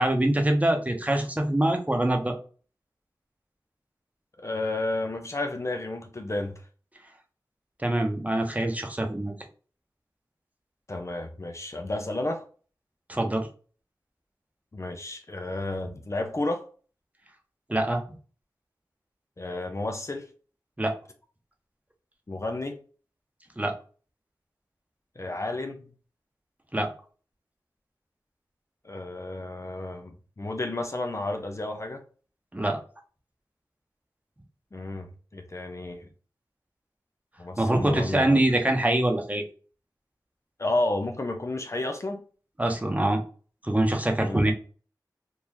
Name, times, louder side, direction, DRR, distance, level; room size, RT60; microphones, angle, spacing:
voice 1, 0.0-2.3 7.8-9.3 13.1-13.5 17.7-18.0 20.8-20.9 23.6-23.7 26.7-26.9 32.5-32.8 37.6-39.4 42.6-43.2 43.6-44.5, right 1 dB, 20° right, 0.9 m, -24 dB
voice 2, 4.4-6.6 10.9-12.5 14.7-16.7 19.4-20.3 22.3-22.8 25.2-25.9 28.8-32.0 34.7-36.1 37.4-38.4 40.6-42.2 44.2-44.5, left 2 dB, 40° left, 0.6 m, -31 dB
3.8 x 2.6 x 3.0 m
wide cardioid pair, 50°, 8 cm